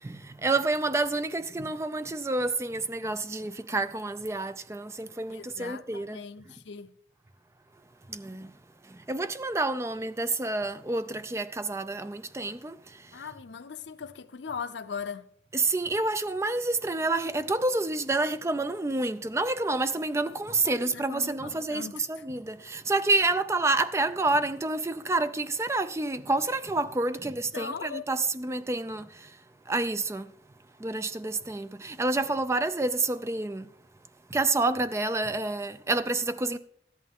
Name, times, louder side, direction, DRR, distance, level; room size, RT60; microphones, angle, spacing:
voice 1, 0.0-6.2 8.1-8.5 8.8-13.2 15.5-29.4 29.7-30.3 30.8-33.7 34.3-36.6, right 2 dB, 15° right, 0.4 m, -29 dB
voice 2, 5.3-6.9 13.1-15.3 20.5-22.2 27.1-27.2 27.5-28.1, left 6 dB, 85° left, 0.6 m, -39 dB
13.0 x 11.0 x 3.6 m
head